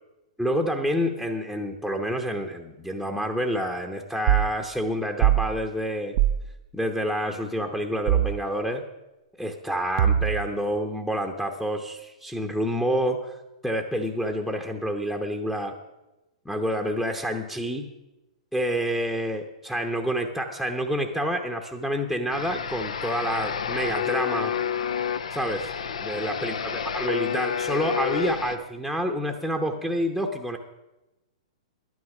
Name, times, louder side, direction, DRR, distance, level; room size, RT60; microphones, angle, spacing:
voice 1, 0.4-6.2 6.7-8.8 9.4-13.4 13.6-15.7 16.4-17.9 18.5-24.5 25.3-25.7 26.0-30.6, equal, 5° left, 3 dB, 0.9 m, -28 dB
sound 1, 4.3-4.5 5.2-5.5 6.2-6.4 8.1-8.4 10.0-10.5, right 11 dB, 50° right, 0.5 m, -21 dB
sound 2, 22.3-28.6, left 7 dB, 75° left, 0.7 m, -29 dB
11.5 x 9.5 x 6.1 m, 1.0 s
hypercardioid pair, 115°, 4 cm